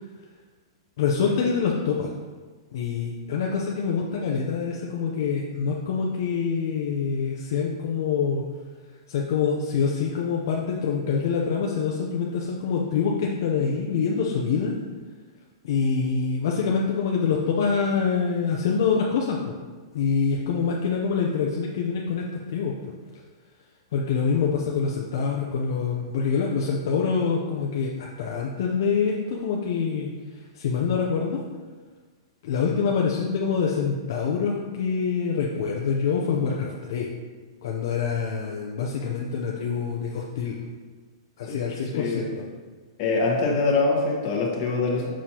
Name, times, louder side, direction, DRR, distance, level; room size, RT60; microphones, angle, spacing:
voice 1, 1.0-2.1 2.7-8.4 9.1-14.7 15.6-19.5 19.9-22.8 23.9-30.1 30.5-31.4 32.4-37.1 37.6-40.6 41.4-42.4, left 5 dB, 50° left, -2 dB, 0.6 m, -25 dB
voice 2, 41.9-42.3 43.0-45.1, left 3 dB, 30° left, -2 dB, 1.3 m, -24 dB
7.1 x 6.2 x 2.9 m, 1.4 s
supercardioid pair, 175°, 3 cm